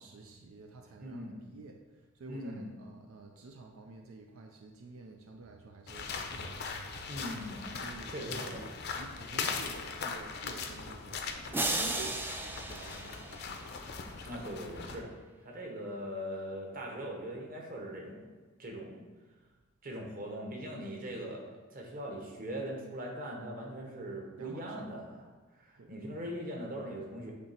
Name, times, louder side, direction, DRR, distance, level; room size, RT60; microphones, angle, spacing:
voice 1, 0.0-7.2 7.8-13.7 24.4-24.9 25.8-25.9, right 3 dB, 85° right, 3 dB, 0.5 m, -50 dB
voice 2, 1.0-1.5 2.3-2.7 7.1-7.7 8.1-8.7 14.2-15.1 15.4-18.3 18.6-19.1 19.8-25.2 25.5-27.3, equal, 45° right, -1 dB, 1.2 m, -41 dB
sound 1, 5.9-15.0, left 5 dB, 50° left, 0.5 m, -40 dB
sound 2, 11.5-13.9, right 2 dB, 10° right, 0.4 m, -35 dB
8.4 x 2.9 x 4.3 m, 1.3 s
head